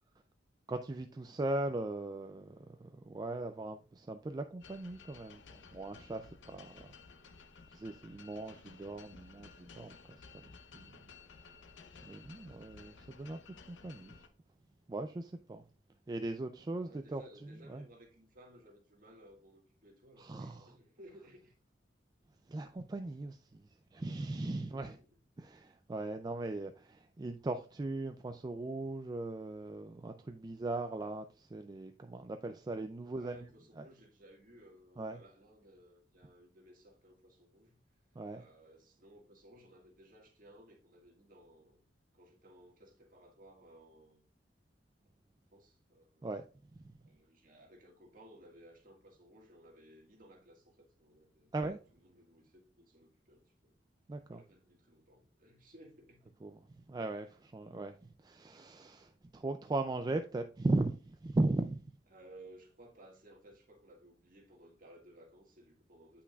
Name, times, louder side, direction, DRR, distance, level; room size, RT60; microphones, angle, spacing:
voice 1, 0.7-5.4 5.7-6.9 7.7-11.1 12.0-13.4 13.7-14.2 14.9-15.6 16.1-17.8 20.2-20.7 22.5-25.0 25.4-33.5 33.8-33.9 35.0-35.2 38.2-38.4 46.2-46.4 46.8-46.9 51.5-51.8 54.1-54.4 56.4-62.0, right 2 dB, 20° right, 0.3 m, -38 dB
sound 1, 4.6-14.3, left 5 dB, 90° left, 0.6 m, -56 dB
voice 2, 16.7-21.5 24.6-25.1 33.0-37.8 38.3-41.8 42.1-44.3 45.5-46.3 47.0-53.8 54.3-56.4 62.1-66.2, right 1 dB, 50° right, 1.7 m, -59 dB
8.2 x 5.8 x 2.3 m
head